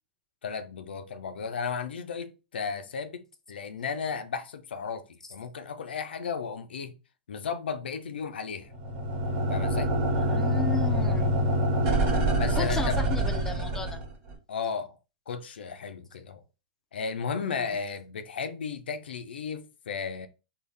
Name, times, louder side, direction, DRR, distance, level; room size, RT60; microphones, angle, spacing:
voice 1, 0.4-6.9 7.3-8.7 9.5-9.9 12.4-13.0 14.5-15.0 15.3-16.4 16.9-20.3, left 6 dB, 85° left, 0.5 m, -34 dB
sound 1, 8.7-14.3, right 1 dB, 50° right, 1.3 m, -26 dB
voice 2, 10.1-11.6 12.6-14.0 17.4-17.7, left 4 dB, 10° left, 0.6 m, -35 dB
3.8 x 2.3 x 3.2 m
hypercardioid pair, 120°, 5 cm